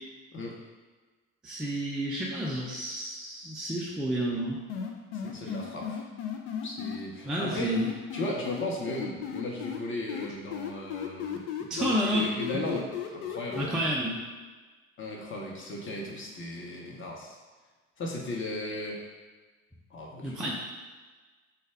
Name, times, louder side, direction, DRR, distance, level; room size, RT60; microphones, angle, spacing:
voice 1, 1.4-4.6 7.2-7.9 11.7-12.3 13.5-14.2 20.2-20.5, equal, ahead, -5 dB, 0.3 m, -30 dB
sound 1, 4.7-7.0 7.7-9.8 10.1-13.7, left 9 dB, 60° left, 0.5 m, -35 dB
voice 2, 5.1-6.0 6.6-7.8 8.1-11.4 11.7-13.7 15.0-17.4 18.0-19.0 19.9-20.4, left 2 dB, 30° left, -2 dB, 0.8 m, -36 dB
3.4 x 2.2 x 3.3 m, 1.4 s
figure-of-eight pair, 60°, 39 cm